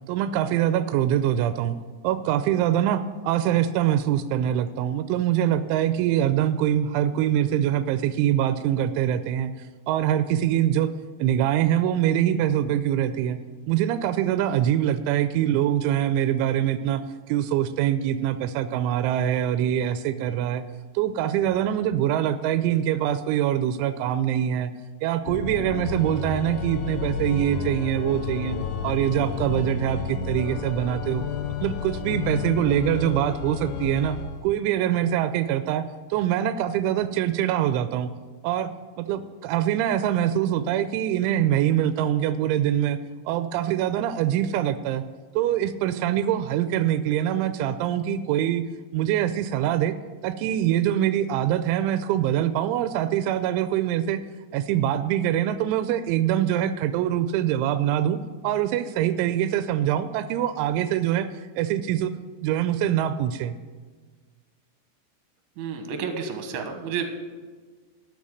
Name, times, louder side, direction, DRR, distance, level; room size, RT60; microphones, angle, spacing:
voice 1, 0.1-1.8 2.0-9.5 9.9-10.9 11.2-13.4 13.7-17.0 17.3-20.6 21.0-24.7 25.0-28.6 28.8-31.2 31.6-34.2 34.4-35.8 36.1-38.1 38.4-38.7 39.0-43.0 43.3-45.0 45.4-48.6 48.9-49.9 50.2-54.2 54.5-58.2 58.4-61.3 61.6-62.1 62.4-63.6, right 11 dB, 90° right, 11 dB, 3.0 m, -24 dB
Organ, 25.2-34.5, left 6 dB, 80° left, 2.3 m, -31 dB
voice 2, 65.6-67.0, right 6 dB, 70° right, 6 dB, 3.0 m, -30 dB
12.5 x 7.1 x 6.5 m, 1.4 s
omnidirectional pair, 5.3 m